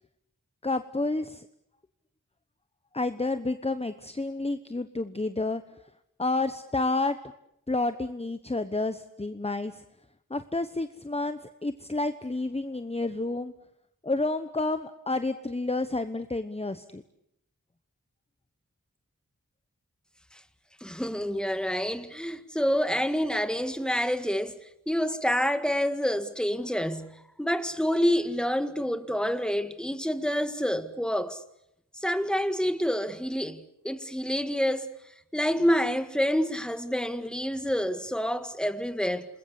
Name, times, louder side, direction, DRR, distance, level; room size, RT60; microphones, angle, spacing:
voice 1, 0.6-1.5 2.9-5.6 6.2-7.2 7.7-9.8 10.3-13.5 14.0-17.0, left 2 dB, 20° left, 1.0 m, -30 dB
voice 2, 20.8-24.6 24.9-31.4 31.9-34.9 35.3-39.3, equal, 5° left, 1.8 m, -28 dB
28.0 x 21.0 x 8.3 m
wide cardioid pair, 65°, 32 cm